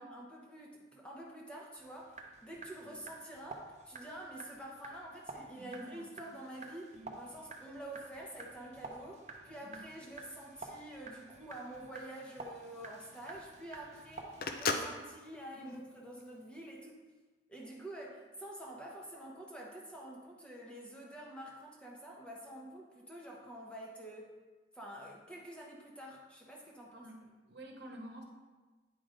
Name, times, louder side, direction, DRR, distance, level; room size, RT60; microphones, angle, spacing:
voice 1, 0.0-17.0 17.5-24.3 24.7-27.1, right 1 dB, 5° left, -3 dB, 0.9 m, -48 dB
sound 1, 1.8-14.6, right 3 dB, 40° right, 0.8 m, -51 dB
voice 2, 5.5-6.1 6.9-7.2 9.6-9.8 15.5-15.8 26.9-28.2, right 1 dB, 60° right, 1 dB, 1.1 m, -50 dB
Telephone, 11.5-16.7, left 4 dB, 50° left, 0.5 m, -39 dB
8.9 x 5.0 x 3.8 m, 1.3 s
head